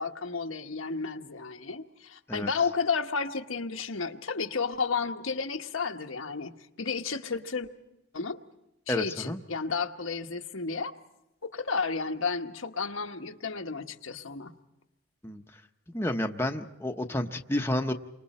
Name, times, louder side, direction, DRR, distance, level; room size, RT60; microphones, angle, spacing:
voice 1, 0.0-7.7 8.1-8.4 8.9-10.9 11.4-14.5, left 5 dB, 90° left, 4 dB, 1.3 m, -32 dB
voice 2, 8.9-9.4 15.2-15.4 15.9-17.9, left 1 dB, 10° left, 4 dB, 0.8 m, -30 dB
29.0 x 25.0 x 4.3 m, 0.91 s
head